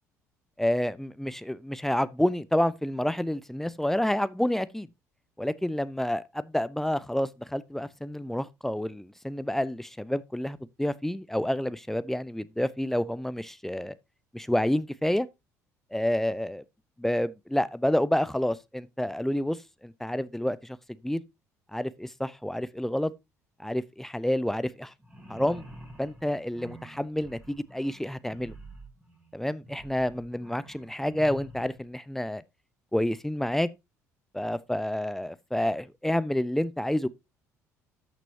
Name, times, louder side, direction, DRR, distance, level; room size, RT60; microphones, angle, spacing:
voice 1, 0.6-4.9 5.4-13.9 14.3-15.3 15.9-16.6 17.0-20.8 21.0-21.2 21.7-23.1 23.6-24.9 25.3-25.6 26.0-28.6 29.3-32.4 32.9-33.7 34.3-37.1, left 1 dB, 5° left, 0.5 m, -29 dB
sound 1, 25.0-31.8, right 1 dB, 15° right, 3.7 m, -48 dB
13.0 x 6.1 x 2.8 m
figure-of-eight pair, 55°, 8 cm